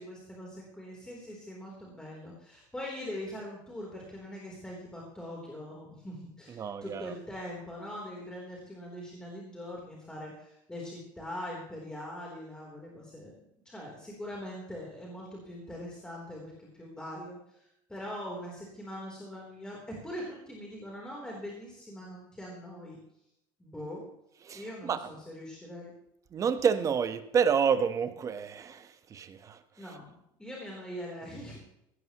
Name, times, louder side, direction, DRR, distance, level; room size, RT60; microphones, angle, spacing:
voice 1, 0.0-13.4 13.6-23.0 23.6-24.0 24.5-25.9 29.8-30.1 30.4-31.6, left 1 dB, 5° left, -3 dB, 3.6 m, -42 dB
voice 2, 6.5-7.1 24.4-25.0 26.3-29.6, right 7 dB, 25° right, 10 dB, 1.2 m, -29 dB
16.5 x 14.0 x 3.0 m, 0.77 s
cardioid pair, 145°, 12 cm